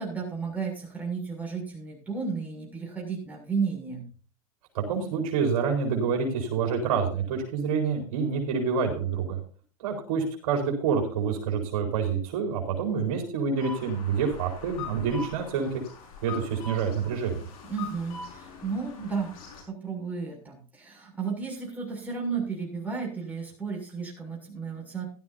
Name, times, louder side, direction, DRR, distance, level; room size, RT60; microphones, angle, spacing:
voice 1, 0.0-4.1 17.7-19.3 19.7-25.0, right 5 dB, 10° right, -2 dB, 6.8 m, -33 dB
voice 2, 4.7-9.4 9.8-15.8 16.2-17.4, right 6 dB, 65° right, 2 dB, 4.4 m, -27 dB
sound 1, 13.5-19.6, left 4 dB, 70° left, 5.4 m, -42 dB
16.5 x 12.5 x 2.7 m, 0.38 s
hypercardioid pair, 115°, 19 cm